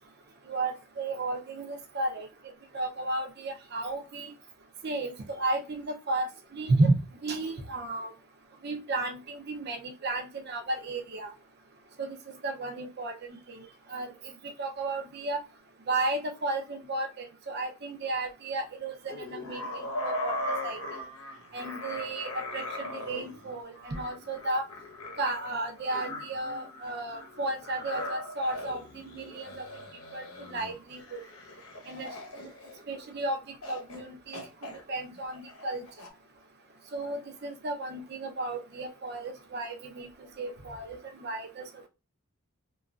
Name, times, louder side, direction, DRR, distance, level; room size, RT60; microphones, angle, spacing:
voice 1, 0.5-2.3 2.7-4.3 4.8-6.9 7.2-8.1 8.6-11.3 12.0-12.2 12.4-13.1 13.5-14.1 14.6-15.4 15.9-20.4 20.6-21.0 21.5-24.7 25.2-29.7 30.1-31.2 31.9-32.1 32.4-32.5 32.9-33.4 33.7-34.4 34.9-35.8 36.9-40.1 40.4-41.6, right 2 dB, 50° right, 3 dB, 0.5 m, -33 dB
sound 1, 19.1-33.1 33.6-34.0 34.3-36.1, left 1 dB, 75° left, 0.7 m, -39 dB
2.9 x 2.3 x 2.3 m, 0.28 s
head